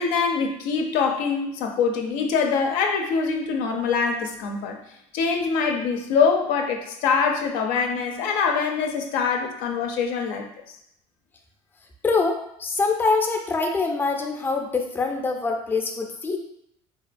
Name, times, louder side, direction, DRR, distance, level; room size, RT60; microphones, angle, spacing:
voice 1, 0.0-4.8 5.1-10.8, left 5 dB, 75° left, 3 dB, 0.4 m, -24 dB
voice 2, 12.0-16.4, left 4 dB, 15° left, 2 dB, 0.4 m, -24 dB
2.8 x 2.2 x 2.5 m, 0.75 s
supercardioid pair, 105°, 15 cm